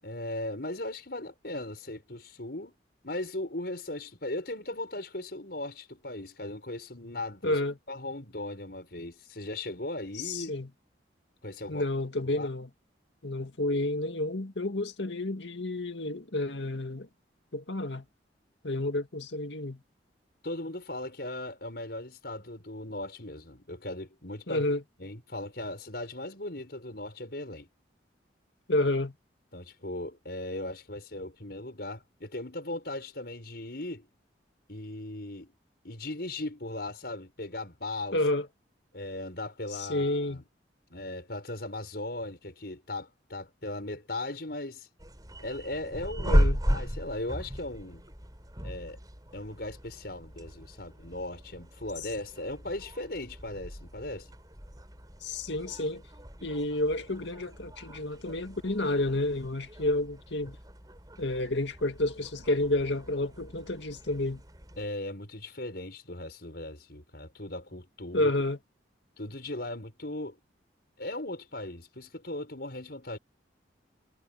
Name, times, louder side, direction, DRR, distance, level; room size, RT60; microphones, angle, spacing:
voice 1, 0.0-2.7 3.0-7.6 7.9-10.5 11.4-11.8 12.2-12.5 20.4-24.7 25.0-27.7 29.5-34.1 34.7-35.5 35.8-38.2 38.9-40.4 40.9-44.9 45.4-46.4 46.7-48.0 48.6-49.0 49.3-54.3 60.5-60.6 64.8-68.3 69.2-70.4 71.0-73.2, left 2 dB, 60° left, 6.6 m, -38 dB
voice 2, 7.4-7.8 10.2-10.7 11.7-12.7 13.2-17.1 17.5-18.0 18.6-19.8 24.5-24.8 28.7-29.1 38.1-38.5 39.7-40.4 46.3-46.6 55.2-56.0 56.4-60.5 61.2-64.4 68.1-68.6, left 2 dB, 80° left, 2.1 m, -30 dB
sound 1, 45.0-64.9, equal, 20° right, 5.9 m, -35 dB
head